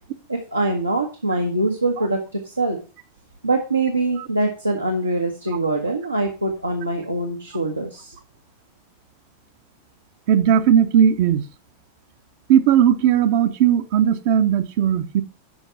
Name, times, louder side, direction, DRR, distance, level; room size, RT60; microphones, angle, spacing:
voice 1, 0.3-2.8 3.4-8.2, right 2 dB, 85° right, 2 dB, 1.2 m, -23 dB
voice 2, 10.3-11.4 12.5-15.2, right 9 dB, 50° right, 9 dB, 0.8 m, -17 dB
7.1 x 5.3 x 5.6 m, 0.34 s
figure-of-eight pair, 90°, 0 cm